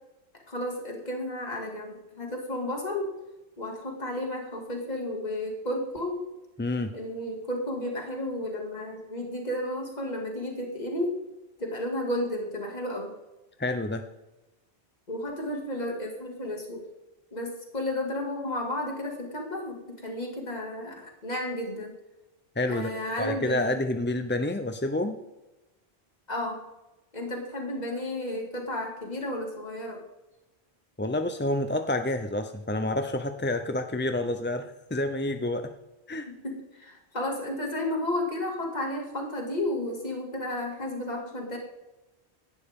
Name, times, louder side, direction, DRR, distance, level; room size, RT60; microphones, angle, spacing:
voice 1, 0.5-3.1 3.6-6.2 6.9-11.2 11.6-13.1 15.1-16.8 17.3-21.9 22.7-23.7 26.3-26.6 27.1-30.0 36.3-41.6, left 1 dB, 40° left, 1 dB, 2.5 m, -32 dB
voice 2, 6.6-6.9 13.6-14.0 22.6-22.9 23.2-25.2 31.0-35.7 36.1-36.3, left 1 dB, 15° left, 7 dB, 0.5 m, -28 dB
17.0 x 11.5 x 3.7 m, 1.0 s
omnidirectional pair, 1.1 m